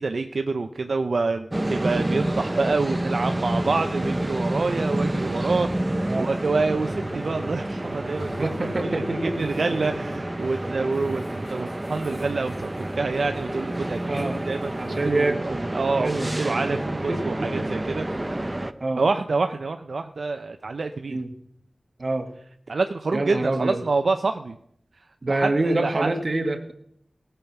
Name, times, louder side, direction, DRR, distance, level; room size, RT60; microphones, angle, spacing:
voice 1, 0.0-11.2 11.5-16.1 16.4-18.1 19.0-21.2 22.7-24.6 25.3-26.1, right 3 dB, 65° right, 7 dB, 0.6 m, -27 dB
sound 1, 1.5-18.7, right 1 dB, 20° right, 0.6 m, -29 dB
sound 2, 3.5-10.3, equal, 45° left, 3.3 m, -44 dB
sound 3, 6.3-6.5 7.9-8.9 9.3-10.2 10.5-10.6 10.9-15.3, left 1 dB, 75° left, 3.2 m, -46 dB
voice 2, 8.4-9.6 14.0-14.4 14.8-16.8 17.1-17.7 18.8-19.0 21.1-21.3 22.0-22.3 23.1-23.8 25.2-26.7, right 2 dB, 40° right, 6 dB, 1.6 m, -27 dB
18.0 x 7.0 x 5.9 m, 0.69 s
wide cardioid pair, 100°, 0 cm